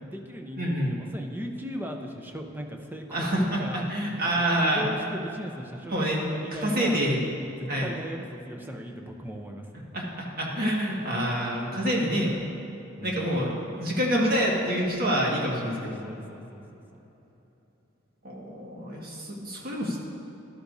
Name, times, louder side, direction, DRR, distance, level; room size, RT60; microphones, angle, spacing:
voice 1, 0.0-3.9 4.3-7.0 7.4-9.9 13.0-13.4 16.0-17.0, equal, 10° right, 3 dB, 0.7 m, -38 dB
voice 2, 0.6-0.9 3.1-4.8 5.9-6.2 6.5-7.2 7.7-7.9 9.9-12.3 13.0-16.0 18.2-20.0, equal, 50° right, -3 dB, 1.8 m, -27 dB
13.0 x 11.5 x 2.7 m, 3.0 s
head